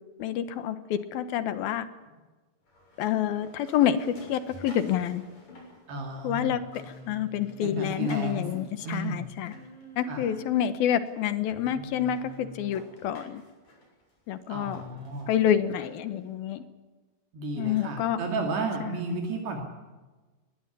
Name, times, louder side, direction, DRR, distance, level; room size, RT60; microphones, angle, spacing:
voice 1, 0.2-1.9 3.0-5.2 6.2-6.6 7.1-9.5 10.0-13.4 14.3-14.8 15.3-16.6 17.6-18.2, left 10 dB, 70° left, 13 dB, 2.7 m, -28 dB
sound 1, 2.6-6.4 6.6-10.4 11.1-11.2 11.6-11.7 12.0-16.2, left 2 dB, 40° left, 8.0 m, -52 dB
voice 2, 5.9-6.6 7.6-8.5 8.8-9.3 10.0-10.4 14.5-15.3 17.3-19.6, right 2 dB, 70° right, 2 dB, 4.6 m, -33 dB
Singing, 6.4-8.8 9.4-10.6 11.5-12.8 14.8-15.1, equal, 10° right, 2.2 m, -47 dB
21.0 x 20.5 x 9.9 m, 1.2 s
omnidirectional pair, 5.0 m